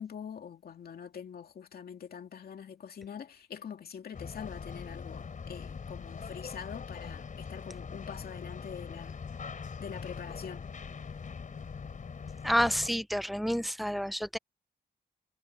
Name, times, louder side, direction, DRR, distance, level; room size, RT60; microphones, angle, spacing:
voice 1, 0.0-9.2 9.8-10.7, left 7 dB, 70° left, 2.4 m, -44 dB
sound 1, 4.1-12.9, left 5 dB, 55° left, 4.2 m, -42 dB
voice 2, 12.4-14.4, equal, ahead, 0.4 m, -29 dB
cardioid pair, 95°, 16 cm